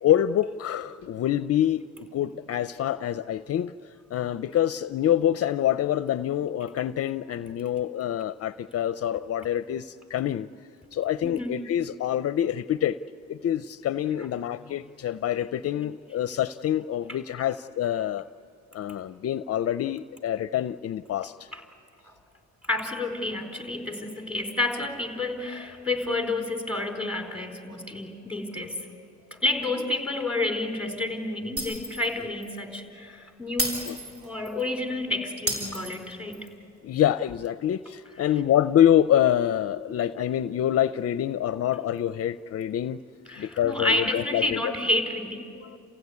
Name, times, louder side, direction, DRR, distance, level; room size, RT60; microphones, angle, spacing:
voice 1, 0.0-10.5 10.9-13.0 13.3-18.3 18.7-21.5 33.9-34.0 36.8-43.0 43.4-44.7 45.6-45.8, left 11 dB, 55° left, 14 dB, 0.5 m, -26 dB
voice 2, 11.2-11.6 21.5-21.6 22.7-28.9 29.3-33.8 34.2-36.4 43.3-45.5, left 2 dB, 5° right, 2 dB, 4.3 m, -30 dB
Shatter, 31.6-32.1 32.4-32.6 33.6-34.6 35.5-36.5, equal, 50° right, 6.8 m, -31 dB
29.5 x 16.0 x 9.6 m, 2.5 s
cardioid pair, 90°, 30 cm